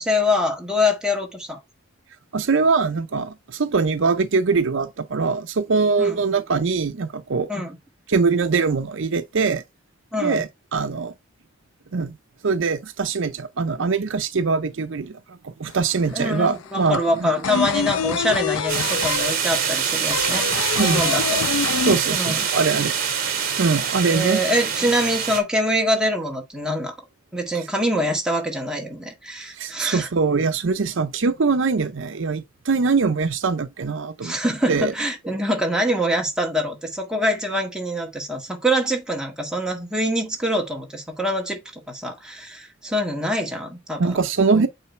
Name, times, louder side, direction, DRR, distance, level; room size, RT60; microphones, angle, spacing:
voice 1, 0.0-1.6 6.0-6.2 7.5-7.8 10.1-10.5 16.1-21.5 22.1-22.5 24.1-26.9 27.3-30.1 34.2-44.2 44.5-44.7, equal, 5° right, 1.7 m, -24 dB
voice 2, 2.3-7.5 8.1-9.6 10.2-11.1 11.9-12.2 12.4-17.3 17.5-17.6 20.8-21.1 21.9-24.4 29.5-34.4 34.7-34.9 44.0-44.7, right 4 dB, 65° right, 0.6 m, -22 dB
sound 1, 15.7-15.8 16.0-22.6 22.9-23.0 23.3-24.1, left 6 dB, 85° left, 0.4 m, -26 dB
sound 2, 18.7-25.4, right 7 dB, 45° right, 2.1 m, -24 dB
8.9 x 3.3 x 4.4 m
head